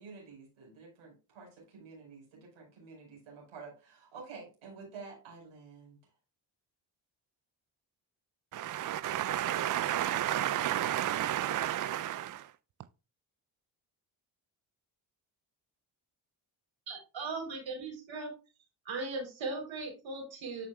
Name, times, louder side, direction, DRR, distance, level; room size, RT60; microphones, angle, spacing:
voice 1, 0.0-6.0, right 4 dB, 85° right, 4.9 m, -50 dB
voice 2, 8.5-12.4, right 12 dB, 45° right, 0.4 m, -31 dB
voice 3, 16.9-18.3 18.9-20.7, right 3 dB, 70° right, 3.7 m, -38 dB
12.5 x 5.3 x 2.3 m
supercardioid pair, 60°, 48 cm